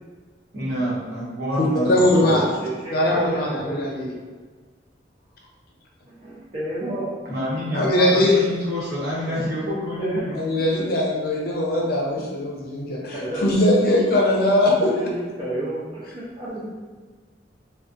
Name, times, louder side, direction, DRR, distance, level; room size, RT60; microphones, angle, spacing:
voice 1, 0.5-2.6 7.2-10.4 16.5-16.6, equal, 65° right, -8 dB, 1.1 m, -27 dB
voice 2, 1.6-2.4 2.9-4.1 7.7-8.4 10.3-15.1, left 1 dB, 55° left, -2 dB, 0.5 m, -20 dB
voice 3, 2.2-4.2 6.1-7.1 10.0-10.3 13.1-13.7 14.8-16.6, right 1 dB, 30° right, -10 dB, 0.5 m, -30 dB
2.3 x 2.2 x 2.5 m, 1.4 s
head